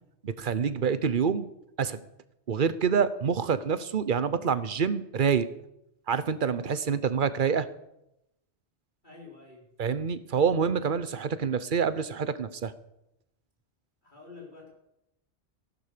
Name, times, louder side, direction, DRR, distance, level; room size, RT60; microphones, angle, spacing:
voice 1, 0.2-1.5 1.8-2.0 2.5-5.5 6.1-7.7 9.8-12.7, right 6 dB, 50° right, 14 dB, 1.0 m, -27 dB
voice 2, 9.0-9.6 14.0-14.7, left 4 dB, 45° left, -2 dB, 4.7 m, -48 dB
14.5 x 11.5 x 6.7 m, 0.85 s
omnidirectional pair, 1.1 m